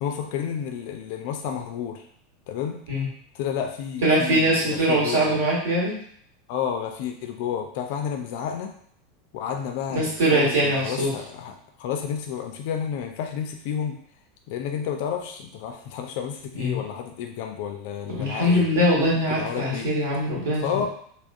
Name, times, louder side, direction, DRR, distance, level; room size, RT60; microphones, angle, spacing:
voice 1, 0.0-2.0 2.5-2.8 3.3-5.4 6.5-8.7 9.3-14.0 14.5-18.7 19.3-19.9 20.6-20.9, left 8 dB, 55° left, 4 dB, 0.3 m, -31 dB
voice 2, 4.0-6.0 9.9-11.1 16.6-16.8 18.1-20.9, equal, 65° right, -5 dB, 1.2 m, -22 dB
3.4 x 2.2 x 2.5 m, 0.62 s
figure-of-eight pair, 85°, 0 cm